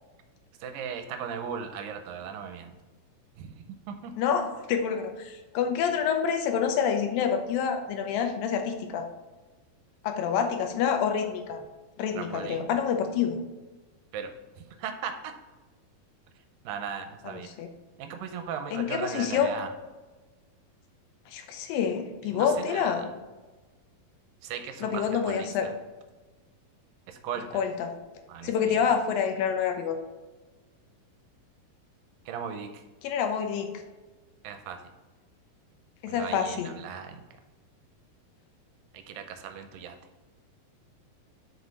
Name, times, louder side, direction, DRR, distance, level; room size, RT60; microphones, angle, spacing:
voice 1, 0.6-2.8 3.4-4.1 12.2-12.7 14.1-14.3 14.6-15.3 16.7-17.5 18.0-19.7 22.2-23.1 24.4-25.7 27.1-27.6 28.3-28.9 32.3-32.8 34.4-34.8 36.1-37.2 38.9-40.0, right 7 dB, 80° right, 7 dB, 2.2 m, -37 dB
voice 2, 4.2-9.1 10.0-11.6 12.0-13.4 17.6-17.7 18.7-19.5 21.3-23.1 24.8-25.7 27.5-27.9 28.4-30.0 33.0-33.7 36.0-36.7, left 7 dB, 80° left, 5 dB, 2.4 m, -27 dB
6.2 x 5.2 x 5.3 m, 1.2 s
omnidirectional pair, 4.2 m